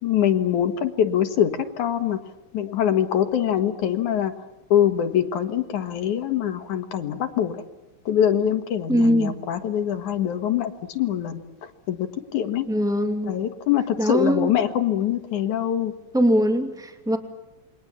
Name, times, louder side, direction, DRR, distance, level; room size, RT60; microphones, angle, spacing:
voice 1, 0.0-2.2 2.5-4.3 4.7-7.6 8.1-12.7 13.2-15.9, left 10 dB, 75° left, 7 dB, 3.0 m, -24 dB
voice 2, 8.9-9.3 12.7-13.3 14.0-14.5 16.1-17.2, equal, ahead, 5 dB, 1.9 m, -21 dB
29.0 x 24.0 x 7.3 m, 1.0 s
omnidirectional pair, 3.6 m